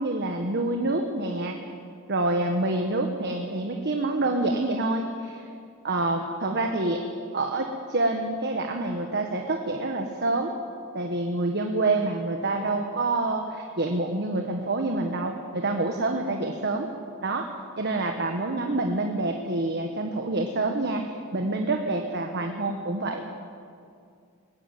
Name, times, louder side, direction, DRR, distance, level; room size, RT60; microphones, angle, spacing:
voice 1, 0.0-1.6 2.1-5.4 5.8-7.0 7.3-10.5 10.9-16.9 17.2-17.5 17.8-23.2, right 2 dB, 50° right, 3 dB, 1.4 m, -27 dB
20.5 x 15.5 x 9.1 m, 2.3 s
head